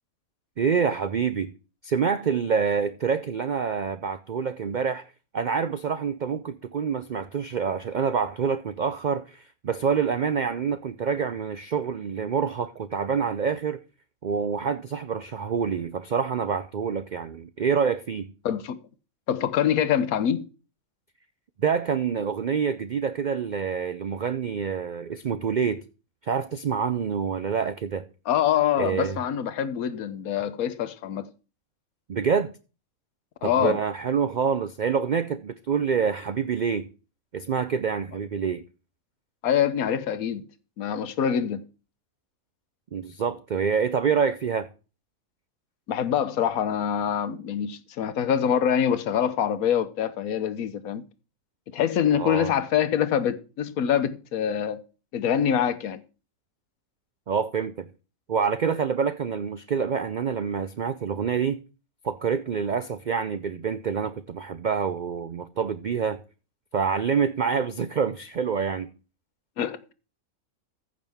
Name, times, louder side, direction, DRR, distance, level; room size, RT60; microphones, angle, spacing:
voice 1, 0.6-1.5 1.8-5.1 5.3-13.8 14.2-18.3 21.6-25.8 26.2-28.1 28.8-29.2 32.1-32.5 33.4-36.9 37.3-38.6 42.9-44.7 52.1-52.5 57.3-57.9 58.3-61.6 62.0-66.2 66.7-68.9, right 6 dB, 75° right, 0.4 m, -26 dB
voice 2, 18.4-18.8 19.3-20.5 28.3-31.3 33.4-33.8 39.4-40.5 40.8-41.6 45.9-51.0 51.7-54.8 55.1-56.0 69.6-69.9, left 9 dB, 80° left, 1.3 m, -25 dB
14.5 x 6.4 x 3.5 m
omnidirectional pair, 1.5 m